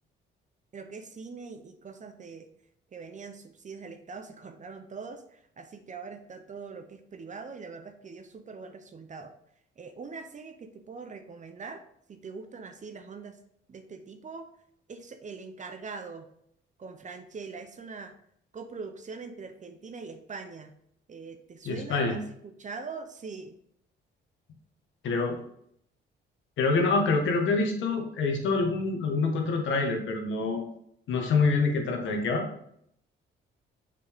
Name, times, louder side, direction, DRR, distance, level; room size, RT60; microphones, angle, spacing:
voice 1, 0.7-2.5 2.9-9.3 9.8-11.8 12.1-13.4 13.7-14.5 14.9-16.2 16.8-18.1 18.5-20.7 21.1-23.5, right 4 dB, 40° right, 7 dB, 0.8 m, -42 dB
voice 2, 21.6-22.2 25.0-25.4 26.6-30.6 31.1-32.4, left 3 dB, 75° left, 3 dB, 1.4 m, -26 dB
6.8 x 5.2 x 3.6 m, 0.70 s
cardioid pair, 90°, 20 cm